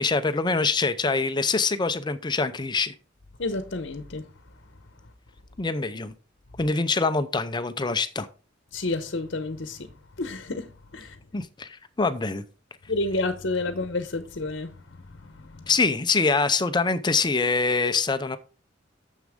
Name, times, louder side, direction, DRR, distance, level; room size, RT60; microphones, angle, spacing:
voice 1, 0.0-2.9 5.6-6.1 6.6-8.3 11.3-12.4 15.7-18.4, left 4 dB, 25° left, 0.6 m, -24 dB
voice 2, 3.4-4.3 8.7-9.9 10.2-11.2 12.9-15.7, left 2 dB, 65° left, 0.9 m, -30 dB
9.5 x 7.3 x 3.6 m
head